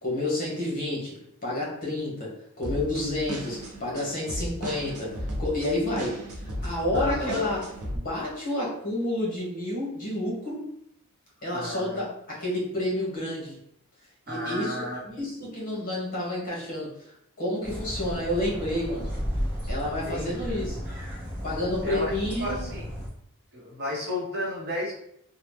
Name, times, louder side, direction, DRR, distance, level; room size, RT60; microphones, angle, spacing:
voice 1, 0.0-6.2 6.6-7.6 7.9-10.7 11.4-13.6 14.3-16.9 17.4-19.1 19.7-20.9 21.4-22.7, left 1 dB, 40° left, -4 dB, 1.1 m, -30 dB
sound 1, 2.6-8.0, equal, 75° right, 0.7 m, -35 dB
voice 2, 6.9-7.4 11.5-12.0 14.3-15.0 19.8-20.3 20.5-20.8 21.8-22.1 22.4-22.8 23.5-24.9, left 1 dB, 50° right, -3 dB, 0.8 m, -32 dB
sound 2, 17.6-23.1, equal, 5° right, 1.1 m, -34 dB
2.9 x 2.1 x 3.3 m, 0.71 s
head